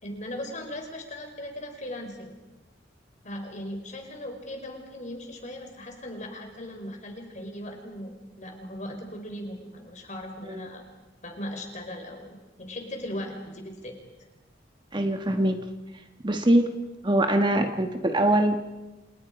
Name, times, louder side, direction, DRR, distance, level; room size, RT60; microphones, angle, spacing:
voice 1, 0.0-2.3 3.2-10.8 11.2-14.0, left 1 dB, 40° left, 4 dB, 4.9 m, -38 dB
voice 2, 14.9-15.6 16.2-16.7 17.0-18.6, right 1 dB, 25° right, 6 dB, 1.3 m, -22 dB
29.5 x 28.0 x 5.2 m, 1.1 s
head